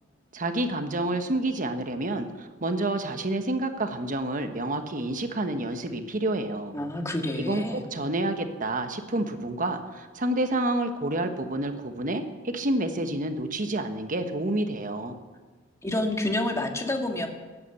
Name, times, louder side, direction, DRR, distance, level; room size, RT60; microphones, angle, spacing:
voice 1, 0.3-6.8 7.4-15.2, right 1 dB, 40° right, 7 dB, 1.2 m, -29 dB
voice 2, 6.7-7.9 15.8-17.3, left 1 dB, 15° left, 3 dB, 1.8 m, -28 dB
16.5 x 9.9 x 8.0 m, 1.3 s
head